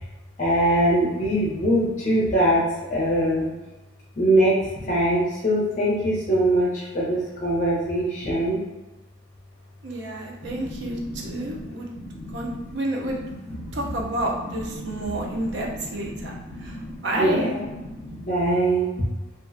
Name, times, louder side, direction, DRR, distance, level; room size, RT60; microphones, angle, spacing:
voice 1, 0.4-2.6 2.9-3.5 4.2-8.6 10.4-12.8 13.1-13.9 14.2-18.9, right 1 dB, 40° left, -6 dB, 0.5 m, -24 dB
voice 2, 9.8-11.9 12.3-13.2 13.7-16.3 16.6-16.8 17.0-17.5, right 1 dB, 70° right, 0 dB, 0.5 m, -29 dB
2.4 x 2.0 x 2.5 m, 1.1 s
head